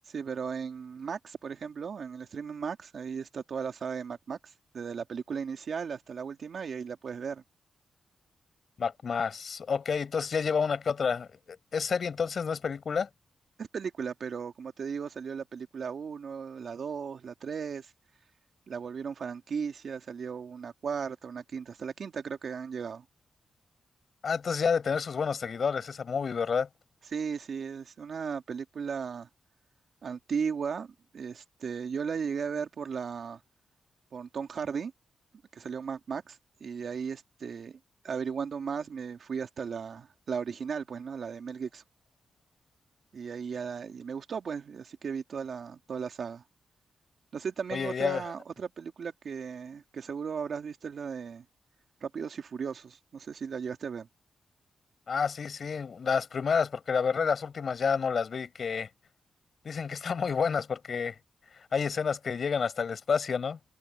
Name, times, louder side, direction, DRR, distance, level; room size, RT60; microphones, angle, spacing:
voice 1, 0.1-7.4 13.6-17.9 18.7-23.0 27.1-29.3 30.0-33.4 34.1-34.9 35.5-37.8 38.0-41.8 43.1-46.4 47.3-51.5 52.0-54.1, right 6 dB, 60° right, 2.4 m, -36 dB
voice 2, 8.8-13.1 24.2-26.7 47.7-48.2 55.1-58.9 59.6-61.2 61.6-63.6, left 6 dB, 55° left, 5.8 m, -29 dB
wide cardioid pair, 110°, 0 cm